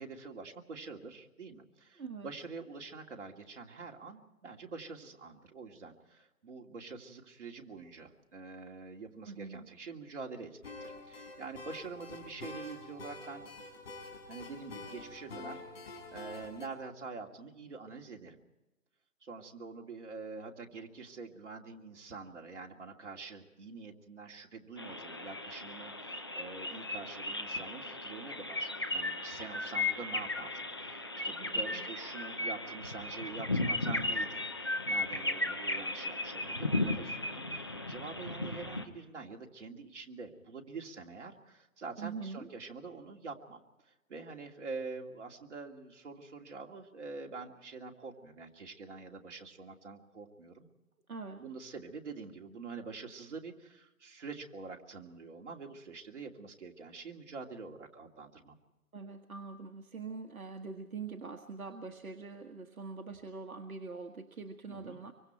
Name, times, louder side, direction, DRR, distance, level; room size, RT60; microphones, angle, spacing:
voice 1, 0.0-13.5 14.3-15.6 16.1-18.4 19.2-34.4 34.9-37.4 37.9-43.6 43.9-50.7 51.4-58.6 64.7-65.0, right 4 dB, 50° right, 1 dB, 2.7 m, -46 dB
voice 2, 2.0-2.3 9.3-9.7 31.4-31.9 42.0-42.5 51.1-51.4 58.9-65.1, right 4 dB, 65° right, 4 dB, 1.7 m, -43 dB
sound 1, 10.6-16.7, left 3 dB, 40° left, 5.3 m, -47 dB
sound 2, 24.8-38.8, left 2 dB, 15° left, 0.7 m, -36 dB
25.0 x 24.5 x 4.5 m, 1.0 s
hypercardioid pair, 160°, 45 cm